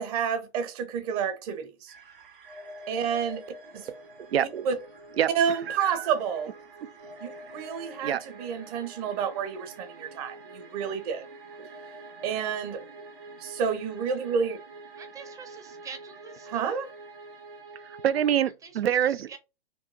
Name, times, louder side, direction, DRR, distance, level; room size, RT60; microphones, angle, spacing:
voice 1, 0.0-1.9 2.9-3.4 3.7-3.9 4.6-4.7 5.4-6.5 7.2-11.2 12.2-12.8 13.4-14.6 16.5-16.9, right 7 dB, 35° right, 0.9 m, -29 dB
sound 1, 1.9-18.4, right 2 dB, 60° right, 1.8 m, -46 dB
voice 2, 4.2-4.7 5.2-6.1 8.0-8.2 10.4-10.5 11.6-11.7 17.7-19.3, right 10 dB, 75° right, 0.5 m, -27 dB
voice 3, 15.0-16.7 18.6-19.0 19.3-19.4, right 6 dB, 10° right, 0.6 m, -45 dB
4.5 x 3.0 x 2.6 m
figure-of-eight pair, 115°, 31 cm